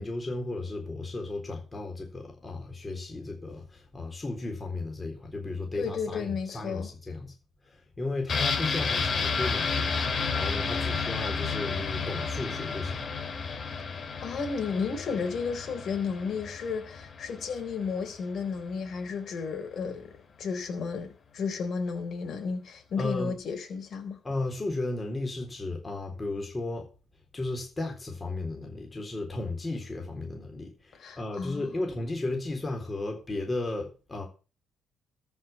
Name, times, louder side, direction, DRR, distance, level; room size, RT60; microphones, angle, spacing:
voice 1, 0.0-7.3 7.6-13.0 23.0-23.3 24.2-26.9 27.3-34.2, left 2 dB, 25° left, 3.9 m, -34 dB
voice 2, 5.7-6.9 14.2-24.2 31.0-31.7, left 5 dB, 60° left, 3.9 m, -33 dB
sound 1, 8.3-17.9 18.2-18.3, left 5 dB, 45° left, 2.3 m, -31 dB
13.5 x 5.8 x 7.1 m
cardioid pair, 90°, 0 cm